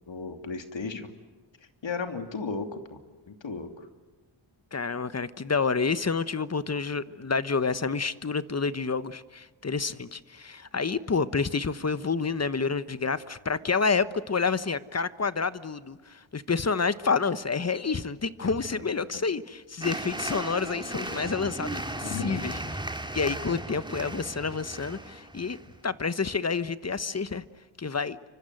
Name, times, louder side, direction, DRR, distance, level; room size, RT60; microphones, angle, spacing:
voice 1, 0.1-1.1 1.8-3.0 3.3-3.9 18.4-19.1 22.0-22.6 23.2-23.4, left 4 dB, 70° left, 7 dB, 3.1 m, -35 dB
voice 2, 4.7-22.6 23.1-25.6 25.8-27.4 27.8-28.2, left 4 dB, 35° left, 14 dB, 1.2 m, -29 dB
sound 1, 19.8-25.7, right 1 dB, 10° right, 2.5 m, -36 dB
29.5 x 25.0 x 7.9 m, 1.3 s
wide cardioid pair, 90°, 47 cm